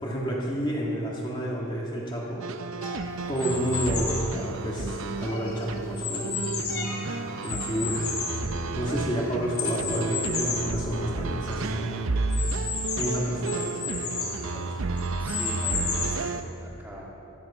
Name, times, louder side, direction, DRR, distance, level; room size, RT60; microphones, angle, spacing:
voice 1, 0.0-2.5 3.3-7.0 7.4-8.0 8.7-12.1 12.9-14.7, equal, 20° left, -4 dB, 1.6 m, -30 dB
sound 1, 2.4-16.4, right 3 dB, 70° right, 0.6 m, -32 dB
sound 2, 2.8-3.1 5.2-5.6 6.7-7.1 8.8-8.9 9.5-9.9, left 6 dB, 55° left, 2.6 m, -35 dB
sound 3, 3.4-4.3 4.9-7.0 7.4-9.1 9.8-10.7 11.2-11.3 11.5-11.6 12.3-14.4 15.0-16.3, left 5 dB, 80° left, 2.9 m, -32 dB
voice 2, 15.2-17.1, equal, 10° right, -4 dB, 1.9 m, -41 dB
15.5 x 12.0 x 5.5 m, 3.0 s
head